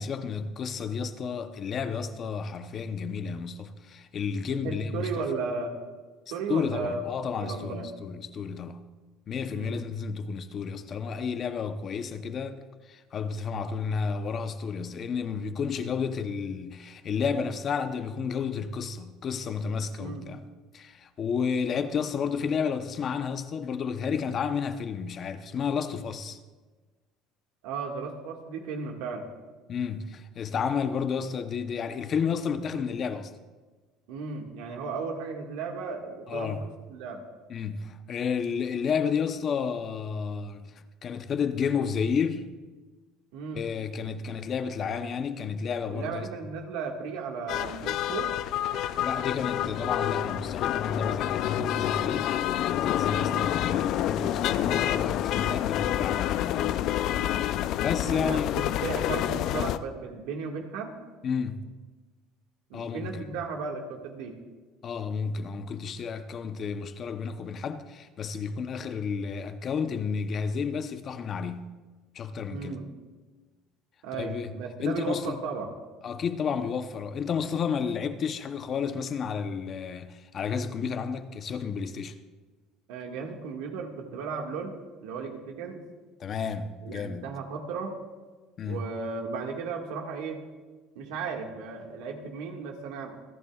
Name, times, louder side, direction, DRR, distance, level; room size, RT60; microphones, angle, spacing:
voice 1, 0.0-5.2 6.5-8.8 9.3-20.4 20.7-26.4 29.7-33.3 36.3-36.6 37.5-40.7 41.0-42.5 43.5-46.3 49.0-52.3 52.7-57.0 57.8-58.6 61.2-61.7 62.7-63.4 64.8-71.7 72.1-72.8 74.1-74.5 74.8-75.4 76.0-82.2 86.2-87.3 88.6-88.8, left 6 dB, 40° left, 0.8 m, -31 dB
voice 2, 4.5-5.8 6.3-7.0 7.4-7.9 9.5-9.8 20.0-20.3 27.6-29.3 34.1-36.6 36.9-37.2 43.3-43.6 45.9-48.3 53.2-53.5 58.0-60.9 62.7-64.4 72.5-72.8 74.0-75.7 82.9-85.8 86.8-87.9 88.7-90.4 91.0-93.2, right 5 dB, 80° right, 1.8 m, -35 dB
sound 1, 47.5-59.8, left 12 dB, 60° left, 0.4 m, -28 dB
27.0 x 10.5 x 2.4 m
cardioid pair, 120°, 0 cm